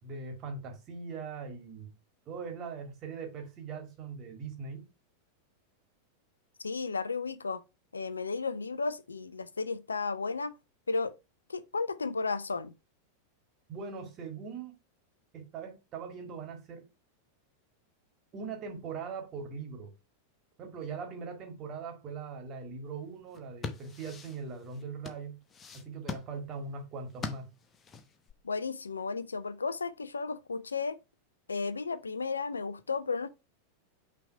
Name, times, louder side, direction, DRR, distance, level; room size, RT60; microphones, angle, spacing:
voice 1, 0.0-1.9 2.3-4.9 13.7-14.8 15.3-16.9 18.3-19.9 20.6-25.4 25.7-27.5, right 5 dB, 35° right, 1.9 m, -41 dB
voice 2, 6.6-7.6 7.9-10.6 10.9-11.2 11.5-12.7 28.4-31.0 31.5-33.3, left 4 dB, 75° left, 0.5 m, -33 dB
sound 1, 23.2-28.3, left 4 dB, 20° left, 0.9 m, -43 dB
5.9 x 3.4 x 4.7 m
figure-of-eight pair, 90°, 0 cm